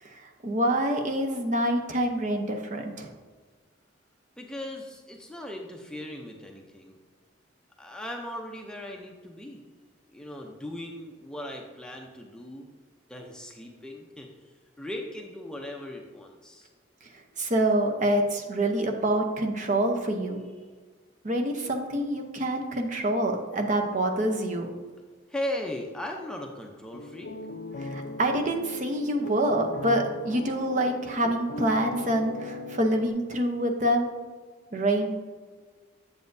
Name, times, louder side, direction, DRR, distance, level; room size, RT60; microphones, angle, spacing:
voice 1, 0.0-3.1 17.4-20.4 21.2-24.7 27.8-34.1 34.7-35.1, right 1 dB, 40° right, 3 dB, 0.7 m, -26 dB
voice 2, 4.4-7.0 7.8-9.6 10.1-12.7 13.1-14.3 14.8-16.7 25.3-27.3, left 1 dB, 5° left, 1 dB, 0.5 m, -38 dB
sound 1, 26.9-33.1, left 2 dB, 65° left, 0.5 m, -38 dB
7.9 x 7.3 x 2.6 m, 1.5 s
head